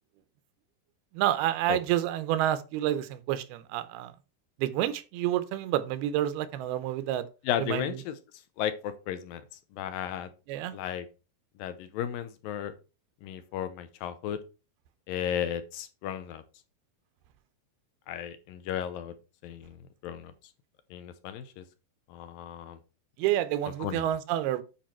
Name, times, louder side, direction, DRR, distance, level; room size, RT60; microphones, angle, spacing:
voice 1, 1.1-4.1 4.6-7.3 7.6-8.0 10.5-10.7 23.2-24.6, right 12 dB, 85° right, 2.8 m, -29 dB
voice 2, 7.4-8.2 8.6-9.4 9.7-10.3 10.7-11.1 11.6-12.7 13.2-14.4 15.1-16.4 18.1-19.1 19.4-20.3 20.9-21.6 22.1-22.8 23.8-24.1, left 10 dB, 75° left, 2.3 m, -34 dB
10.0 x 4.8 x 4.4 m
omnidirectional pair, 4.4 m